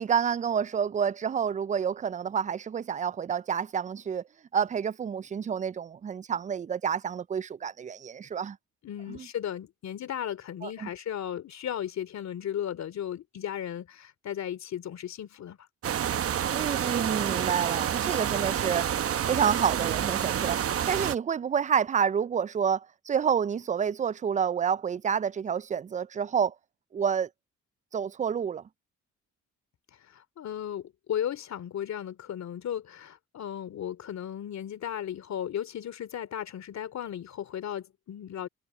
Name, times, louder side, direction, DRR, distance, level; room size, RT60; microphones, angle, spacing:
voice 1, 0.0-4.2 4.5-8.6 9.1-9.3 10.6-10.9 16.5-18.9 19.3-20.6 20.9-26.5 26.9-27.3 27.9-28.6, right 7 dB, 25° right, 0.4 m, -28 dB
voice 2, 8.8-15.6 30.0-38.5, left 10 dB, 65° left, 2.7 m, -35 dB
sound 1, 15.8-21.2, right 9 dB, 50° right, 0.9 m, -28 dB
cardioid pair, 90°, 30 cm